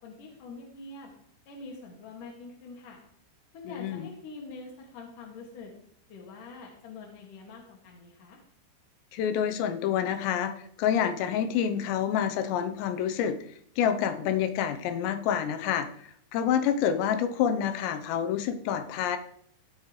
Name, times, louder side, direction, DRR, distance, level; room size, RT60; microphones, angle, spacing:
voice 1, 0.0-1.1 1.5-3.0 3.5-5.7 6.1-8.4, left 3 dB, 50° left, -1 dB, 3.0 m, -45 dB
voice 2, 3.7-4.1 9.1-10.5 10.8-13.4 13.8-15.9 16.3-19.2, left 9 dB, 75° left, 8 dB, 2.7 m, -27 dB
17.0 x 8.7 x 3.3 m, 0.66 s
omnidirectional pair, 5.9 m